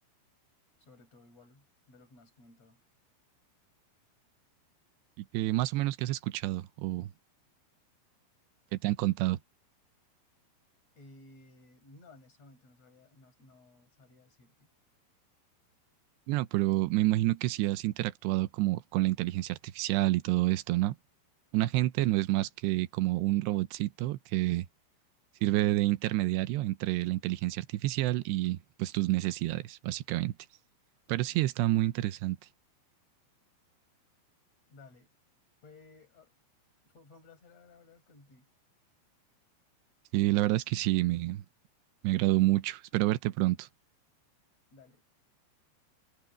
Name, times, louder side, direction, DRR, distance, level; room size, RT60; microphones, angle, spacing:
voice 1, 0.8-2.8 10.9-14.7 34.7-35.1 35.6-36.3 36.8-38.5 44.7-45.0, left 3 dB, 35° left, 7.6 m, -57 dB
voice 2, 5.3-7.1 8.7-9.4 16.3-21.0 21.5-24.7 25.4-30.3 31.1-32.4 40.1-41.4 42.0-43.7, right 17 dB, 80° right, 2.8 m, -28 dB
omnidirectional pair, 5.3 m